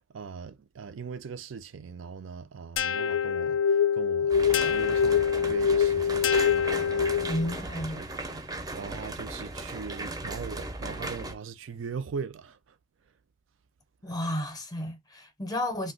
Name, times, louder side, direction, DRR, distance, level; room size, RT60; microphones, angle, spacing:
voice 1, 0.1-3.6 3.9-12.6, right 5 dB, 80° right, 0.4 m, -40 dB
sound 1, 2.8-7.5, left 7 dB, 70° left, 0.3 m, -24 dB
sound 2, 4.3-11.3, right 2 dB, 20° right, 0.5 m, -37 dB
voice 2, 7.2-8.0 14.0-15.9, left 1 dB, 20° left, 0.6 m, -32 dB
2.6 x 2.2 x 3.7 m
head